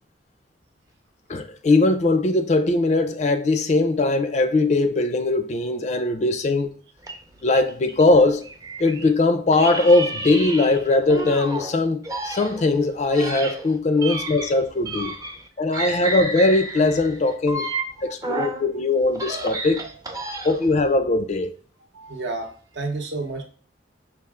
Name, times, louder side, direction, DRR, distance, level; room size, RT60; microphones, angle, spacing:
voice 1, 1.3-6.8 7.4-8.4 8.8-12.0 12.2-15.1 15.6-17.7 18.0-19.8 20.4-21.5, left 2 dB, 35° left, 0.4 m, -20 dB
sound 1, 7.0-9.1 9.5-11.7 12.0-15.5 15.7-18.6 19.0-20.7, right 2 dB, 20° right, 0.5 m, -31 dB
voice 2, 15.7-16.2 18.0-18.4 21.9-23.4, right 3 dB, 65° right, 0.8 m, -33 dB
5.5 x 2.4 x 3.6 m
head